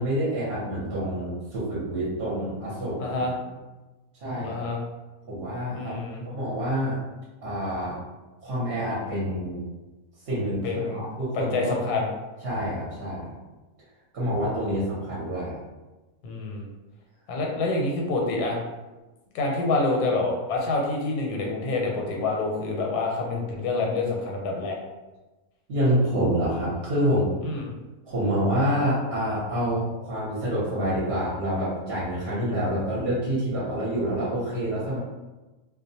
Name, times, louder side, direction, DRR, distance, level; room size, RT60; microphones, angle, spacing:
voice 1, 0.0-3.4 4.2-4.6 5.3-5.9 6.3-7.0 7.4-8.0 8.4-9.6 10.2-11.7 12.4-13.3 14.1-15.6 25.7-27.3 28.1-35.0, equal, 50° right, -8 dB, 0.8 m, -27 dB
voice 2, 3.0-3.3 4.4-4.8 5.7-6.2 10.6-11.0 11.3-12.1 16.2-16.7 17.3-18.6 19.3-24.8 27.4-27.7, left 3 dB, 85° left, 0 dB, 1.1 m, -27 dB
2.4 x 2.1 x 2.7 m, 1.1 s
omnidirectional pair, 1.6 m